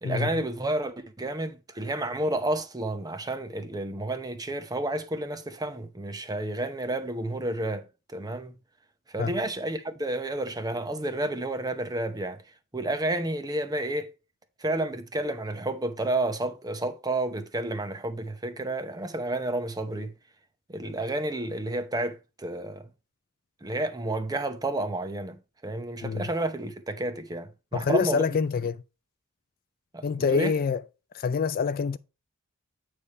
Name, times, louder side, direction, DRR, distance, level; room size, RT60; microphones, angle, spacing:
voice 1, 0.0-8.5 9.1-12.4 12.7-14.1 14.6-20.1 20.7-22.9 23.6-28.2 29.9-30.0 30.3-30.5, right 1 dB, 15° right, 0.7 m, -31 dB
voice 2, 27.7-28.8 30.0-30.8 31.1-32.0, left 5 dB, 40° left, 0.3 m, -26 dB
8.5 x 3.3 x 5.4 m
head